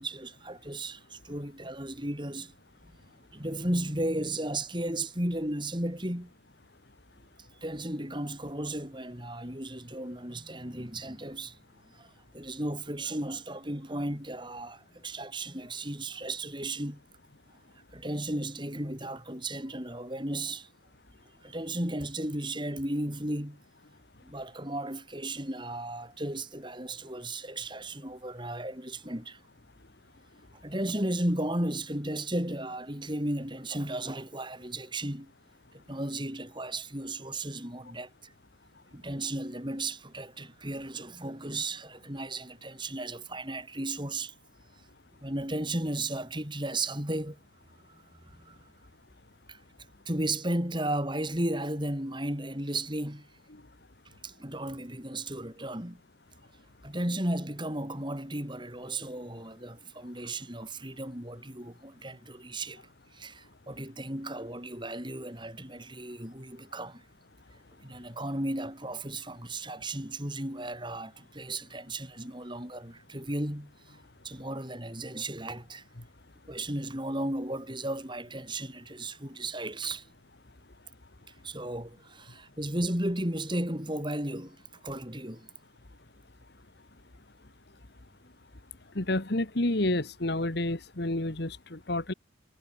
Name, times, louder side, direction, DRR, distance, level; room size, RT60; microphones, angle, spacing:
voice 1, 0.0-2.5 3.3-6.3 7.6-11.6 11.9-12.1 12.3-17.0 17.9-20.7 21.4-23.6 24.3-29.4 30.6-35.3 35.7-38.3 38.9-44.3 45.2-47.4 47.9-48.7 49.5-49.6 50.1-53.3 54.2-56.0 56.8-62.8 63.1-67.0 67.8-74.0 74.2-75.8 76.5-80.1 81.4-84.6 84.8-85.5, right 1 dB, 25° right, 7.0 m, -35 dB
voice 2, 88.9-92.1, left 1 dB, 55° left, 1.6 m, -30 dB
head